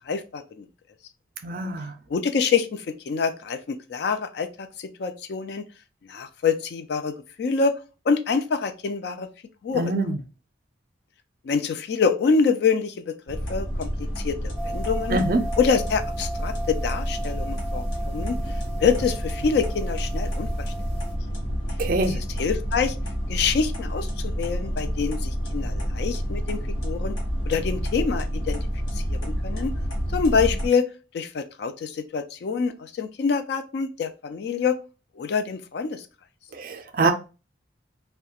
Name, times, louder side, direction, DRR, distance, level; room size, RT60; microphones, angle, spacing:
voice 1, 0.1-0.7 2.1-5.6 6.1-7.7 8.1-9.3 9.6-10.0 11.4-15.2 15.6-18.4 18.8-20.5 22.0-23.0 23.3-27.1 27.4-28.7 29.1-29.7 30.1-30.9 31.1-34.7 35.2-36.1, left 5 dB, 60° left, 0.3 m, -26 dB
voice 2, 1.4-1.9 9.7-10.2 15.1-15.4 21.8-22.2 36.5-37.1, right 3 dB, 45° right, 0.4 m, -24 dB
sound 1, 13.3-30.7, equal, 85° left, 1.0 m, -29 dB
sound 2, 14.6-21.1, right 2 dB, 5° left, 0.5 m, -37 dB
2.3 x 2.1 x 2.7 m
head